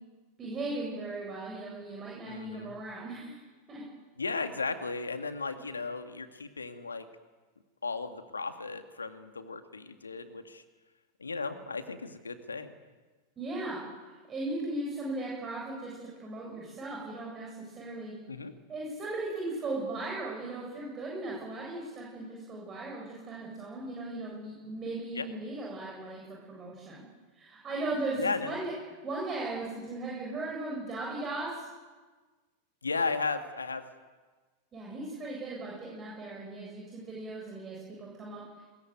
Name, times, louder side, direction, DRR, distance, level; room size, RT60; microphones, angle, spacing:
voice 1, 0.4-3.4 3.7-3.8 13.4-13.8 14.3-18.1 18.7-27.0 27.3-28.7 29.0-31.7 34.7-38.4, right 2 dB, 25° right, -3 dB, 8.0 m, -37 dB
voice 2, 2.2-2.7 4.2-7.1 7.8-10.6 11.2-12.7 18.3-18.5 25.1-25.3 28.2-28.6 32.8-33.8, left 4 dB, 75° left, 8 dB, 2.2 m, -35 dB
22.5 x 22.0 x 9.4 m, 1.3 s
figure-of-eight pair, 90°, 0 cm